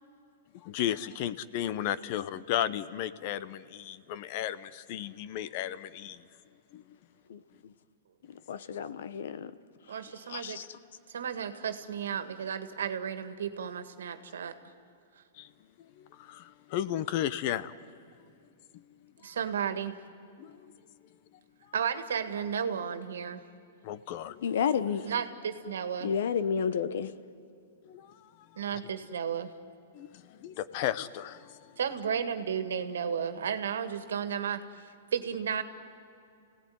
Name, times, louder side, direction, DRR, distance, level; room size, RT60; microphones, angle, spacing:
voice 1, 0.5-6.3 6.7-7.0 15.3-15.5 15.8-18.0 18.7-19.4 20.4-20.8 21.6-21.7 23.8-24.4 27.8-28.8 29.9-31.8, left 11 dB, 45° left, 16 dB, 0.8 m, -35 dB
voice 2, 7.3-7.7 8.5-9.5 10.3-10.7 24.4-25.0 26.0-27.1, left 7 dB, 75° left, 14 dB, 1.1 m, -31 dB
voice 3, 9.9-10.6 11.1-14.6 19.2-20.0 21.7-23.4 25.0-26.1 28.6-29.5 31.8-35.6, right 7 dB, 90° right, 10 dB, 1.8 m, -33 dB
29.5 x 17.5 x 9.5 m, 2.5 s
hypercardioid pair, 150°, 0 cm